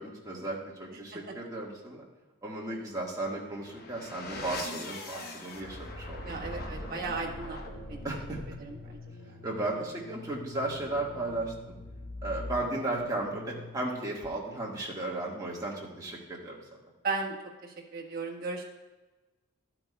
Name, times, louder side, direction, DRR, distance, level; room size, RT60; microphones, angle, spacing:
voice 1, 0.0-2.0 2.4-7.1 8.0-8.4 9.4-11.7 12.2-16.6, right 2 dB, 15° right, -3 dB, 1.5 m, -35 dB
sound 1, 3.4-14.1, left 2 dB, 45° left, 0.9 m, -42 dB
voice 2, 6.2-8.0 17.0-17.3 17.6-18.6, right 4 dB, 45° right, -2 dB, 1.4 m, -35 dB
12.5 x 8.8 x 2.2 m, 1.2 s
head